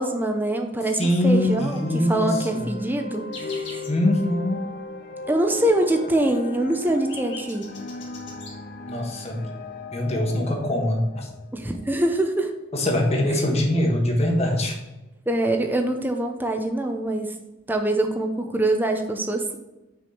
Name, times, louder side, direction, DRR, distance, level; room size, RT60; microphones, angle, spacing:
voice 1, 0.0-3.8 5.3-7.7 11.5-12.5 15.3-17.4 17.7-19.6, right 1 dB, 10° right, 4 dB, 0.7 m, -24 dB
voice 2, 1.0-2.7 3.9-4.7 8.9-9.5 9.9-11.3 12.7-14.7, left 1 dB, 35° left, 1 dB, 1.3 m, -23 dB
sound 1, 1.1-12.4, left 3 dB, 50° left, 0.7 m, -37 dB
sound 2, 3.3-4.0 4.4-4.5 4.8-5.1 5.4-5.5 5.8-8.6 9.3-9.4 9.6-9.8, left 4 dB, 65° left, 1.7 m, -42 dB
6.1 x 4.8 x 5.6 m, 1.0 s
head